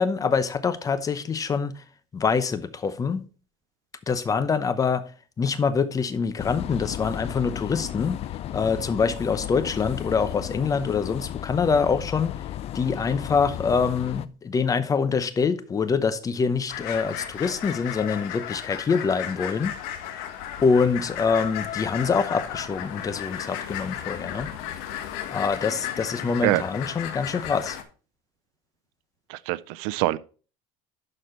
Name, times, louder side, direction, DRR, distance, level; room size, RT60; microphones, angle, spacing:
voice 1, 0.0-1.8 2.1-3.2 4.1-5.0 5.4-8.2 8.5-12.3 12.7-19.7 20.6-24.5 25.3-27.8, left 5 dB, 25° left, 0.8 m, -25 dB
sound 1, 6.4-14.3, left 12 dB, 45° left, 0.4 m, -34 dB
sound 2, 16.7-27.8, left 10 dB, 80° left, 1.3 m, -34 dB
voice 2, 29.3-30.2, right 18 dB, 90° right, 0.5 m, -24 dB
11.5 x 4.3 x 4.4 m
cardioid pair, 135°, 15 cm